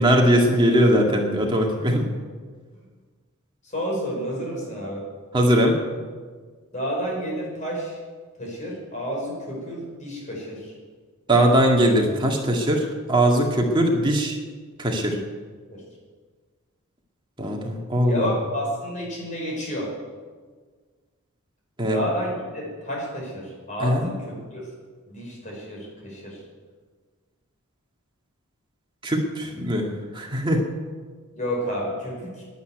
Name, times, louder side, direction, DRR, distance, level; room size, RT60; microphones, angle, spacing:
voice 1, 0.0-2.0 5.3-5.8 11.3-14.4 14.8-15.2 17.4-18.3 21.8-22.0 23.8-24.1 29.0-29.9 30.1-30.6, equal, 20° right, 0 dB, 2.0 m, -20 dB
voice 2, 3.6-5.1 6.7-8.0 8.4-10.7 15.7-15.8 18.1-19.9 21.9-24.6 25.1-26.4 31.3-32.4, equal, 35° left, -2 dB, 5.3 m, -30 dB
11.5 x 10.5 x 9.2 m, 1.5 s
head